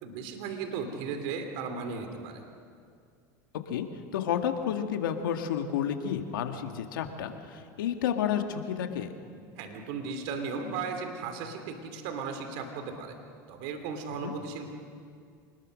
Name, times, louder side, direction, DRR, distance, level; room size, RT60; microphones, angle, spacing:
voice 1, 0.0-2.4 9.6-13.1 13.5-14.7, right 5 dB, 65° right, 6 dB, 3.1 m, -36 dB
voice 2, 4.1-9.1 14.1-14.3, left 9 dB, 85° left, 5 dB, 2.0 m, -31 dB
26.0 x 20.5 x 6.5 m, 2.2 s
hypercardioid pair, 100°, 11 cm